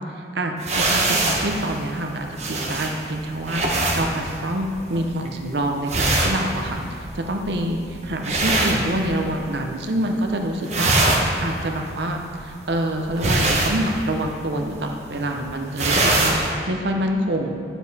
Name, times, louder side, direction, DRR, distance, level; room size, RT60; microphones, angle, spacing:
voice 1, 0.0-3.6 3.9-6.8 7.1-16.4 16.7-17.5, right 1 dB, 70° right, 3 dB, 0.8 m, -26 dB
sound 1, 0.6-9.6 9.8-10.3 10.5-16.5, right 2 dB, 40° right, 1.1 m, -24 dB
10.0 x 7.2 x 4.2 m, 2.4 s
head